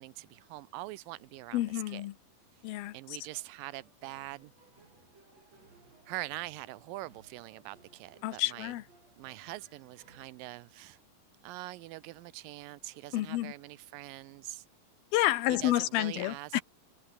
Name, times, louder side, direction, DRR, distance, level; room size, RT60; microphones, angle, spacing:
voice 1, 0.0-2.0 2.9-4.5 6.1-8.7 9.2-11.0 11.4-14.7 15.6-16.6, right 18 dB, 80° right, 2.2 m, -43 dB
voice 2, 1.5-2.1 2.6-3.0 8.2-8.8 13.1-13.5 15.1-16.6, left 15 dB, 90° left, 3.0 m, -29 dB
sound 1, 3.2-10.3, right 3 dB, 45° right, 7.2 m, -62 dB
omnidirectional pair, 4.2 m